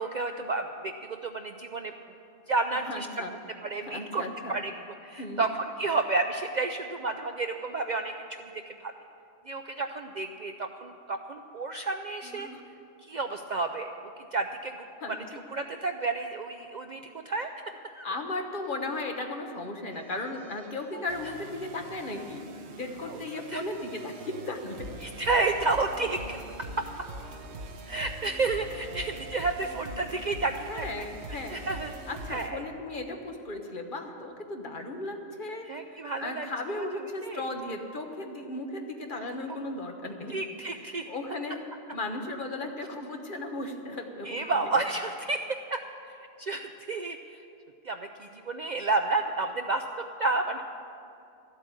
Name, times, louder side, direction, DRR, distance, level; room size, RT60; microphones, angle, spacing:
voice 1, 0.0-1.9 2.5-3.1 3.6-4.7 5.0-8.1 8.5-8.9 9.5-12.5 13.0-13.9 14.2-15.2 15.5-17.5 17.8-18.1 20.9-21.0 23.1-23.2 23.5-23.6 25.0-26.4 26.8-26.9 27.9-31.1 31.5-31.9 32.3-32.6 35.7-36.5 36.7-36.8 37.2-37.5 40.3-41.1 44.2-46.1 46.4-47.4 47.8-50.6, right 3 dB, 50° right, 6 dB, 0.5 m, -31 dB
voice 2, 2.7-3.3 3.8-4.5 5.2-5.4 12.2-12.6 15.0-15.2 18.0-22.4 22.8-24.9 30.7-31.7 32.1-40.3 41.0-44.7, left 2 dB, 45° left, 4 dB, 1.2 m, -36 dB
sound 1, 19.9-32.5, right 2 dB, 70° right, 1.1 m, -43 dB
13.0 x 8.2 x 8.6 m, 2.5 s
omnidirectional pair, 1.2 m